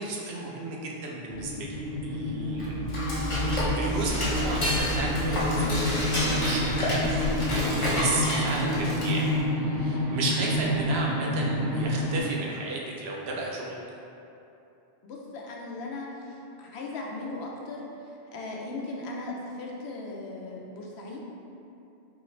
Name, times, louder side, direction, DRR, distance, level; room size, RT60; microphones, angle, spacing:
voice 1, 0.0-2.7 3.2-13.8, right 2 dB, 75° right, -3 dB, 0.8 m, -34 dB
sound 1, 1.3-12.2, left 1 dB, 20° right, 0.6 m, -29 dB
Dishes pots and pans / Cutlery silverware, 2.5-9.4, left 1 dB, 35° left, 0.6 m, -29 dB
voice 2, 15.0-21.2, left 2 dB, 80° left, -2 dB, 0.8 m, -38 dB
3.8 x 2.5 x 3.1 m, 2.8 s
omnidirectional pair, 1.1 m